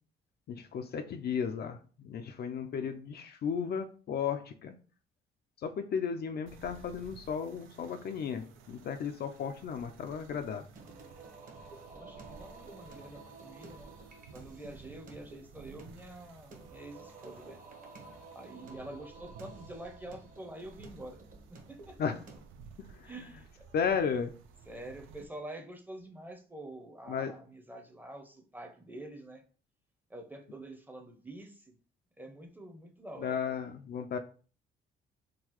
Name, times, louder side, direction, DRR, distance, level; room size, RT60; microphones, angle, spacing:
voice 1, 0.5-4.7 5.6-10.7 22.0-22.2 22.9-23.1 23.7-24.3 27.1-27.3 33.2-34.2, left 7 dB, 55° left, 7 dB, 0.4 m, -34 dB
sound 1, 6.5-25.3, right 5 dB, 90° right, 0.4 m, -55 dB
Singing, 10.8-22.4, right 3 dB, 40° right, 0.9 m, -52 dB
voice 2, 11.9-13.9 14.3-17.6 18.3-21.2 21.5-22.0 23.0-23.5 24.6-29.4 30.1-31.8 32.2-33.6, right 1 dB, 10° right, 4 dB, 0.6 m, -47 dB
3.8 x 2.2 x 3.0 m, 0.39 s
cardioid pair, 90°, 20 cm